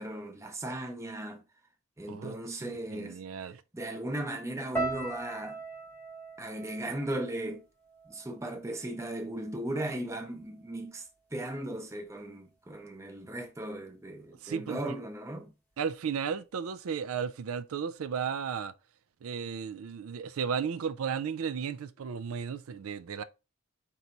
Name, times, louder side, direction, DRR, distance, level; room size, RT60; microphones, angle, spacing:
voice 1, 0.0-1.4 2.0-3.2 3.7-5.6 6.4-7.6 8.1-15.5, right 1 dB, 15° right, 0.6 m, -37 dB
voice 2, 2.1-3.6 14.4-14.8 15.8-18.7 19.2-23.2, right 6 dB, 85° right, 0.4 m, -34 dB
sound 1, 4.7-9.0 9.2-10.0 10.6-10.8, right 3 dB, 10° left, 1.0 m, -40 dB
4.6 x 2.9 x 3.9 m
head